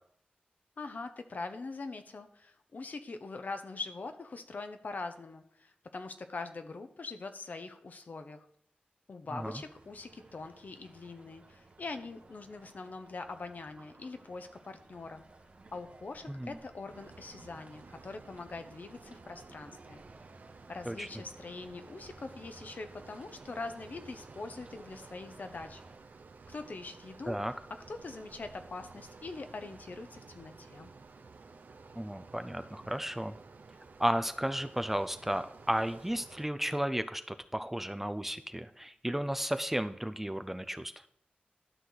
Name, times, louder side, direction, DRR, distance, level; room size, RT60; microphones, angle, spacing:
voice 1, 0.8-8.5 9.1-15.2 15.7-20.0 20.7-25.8 26.5-27.4 27.7-30.9, left 3 dB, 60° left, 8 dB, 0.9 m, -43 dB
voice 2, 9.3-9.6 16.3-16.5 20.9-21.1 27.3-27.5 32.0-33.4 34.0-40.9, equal, 10° right, 9 dB, 0.5 m, -33 dB
sound 1, 9.4-26.0, right 2 dB, 45° right, 1.1 m, -57 dB
sound 2, 16.9-36.5, right 4 dB, 65° right, 0.7 m, -53 dB
12.0 x 6.4 x 4.0 m, 0.67 s
wide cardioid pair, 105°, 3 cm